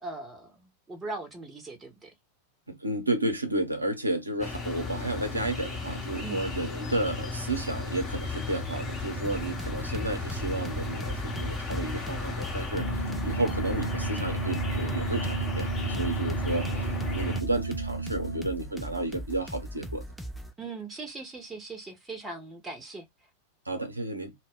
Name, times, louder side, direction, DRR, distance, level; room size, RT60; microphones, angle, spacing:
voice 1, 0.0-2.1 6.2-6.4 20.6-23.0, right 3 dB, 15° right, 0.8 m, -40 dB
voice 2, 2.7-20.0 23.7-24.3, right 2 dB, 85° right, 0.7 m, -32 dB
sound 1, 4.4-17.4, left 2 dB, 25° left, 0.9 m, -34 dB
sound 2, 9.2-20.5, equal, ahead, 0.4 m, -40 dB
sound 3, 12.7-18.5, right 3 dB, 85° left, 0.6 m, -34 dB
2.2 x 2.1 x 3.4 m
figure-of-eight pair, 90°, 0 cm